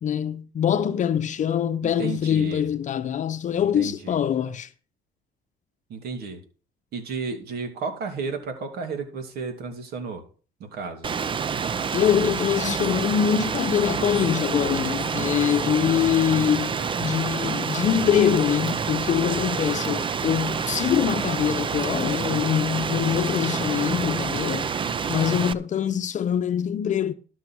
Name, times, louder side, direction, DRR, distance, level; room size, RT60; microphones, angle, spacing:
voice 1, 0.0-4.7 11.9-24.7 25.1-27.1, left 9 dB, 45° left, 0.8 m, -24 dB
voice 2, 1.8-2.7 3.6-4.2 5.9-6.4 6.9-10.2 10.6-11.1 15.7-15.9 16.7-16.8, right 4 dB, 70° right, 3.1 m, -33 dB
Rain, 11.0-25.5, right 6 dB, 30° right, 0.6 m, -28 dB
12.5 x 6.3 x 6.2 m
cardioid pair, 110°, 17 cm